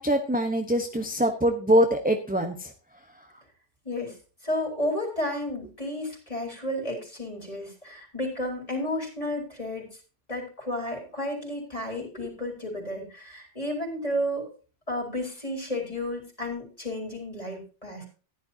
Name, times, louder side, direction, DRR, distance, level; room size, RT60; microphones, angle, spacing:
voice 1, 0.0-2.7, equal, 10° right, 4 dB, 0.9 m, -23 dB
voice 2, 3.8-4.2 4.4-9.9 10.3-14.5 14.9-18.1, left 1 dB, 30° left, -1 dB, 4.4 m, -32 dB
14.5 x 11.0 x 2.8 m, 0.35 s
omnidirectional pair, 1.2 m